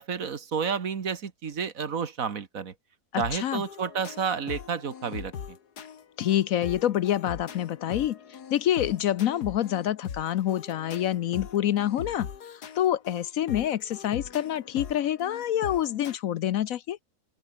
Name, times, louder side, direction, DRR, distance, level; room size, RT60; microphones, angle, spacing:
voice 1, 0.0-2.7 3.1-5.3, right 6 dB, 60° right, 1.9 m, -30 dB
voice 2, 3.1-3.6 6.2-17.0, left 11 dB, 65° left, 1.0 m, -27 dB
sound 1, 3.2-16.1, left 7 dB, 85° left, 2.0 m, -41 dB
open air
omnidirectional pair, 1.6 m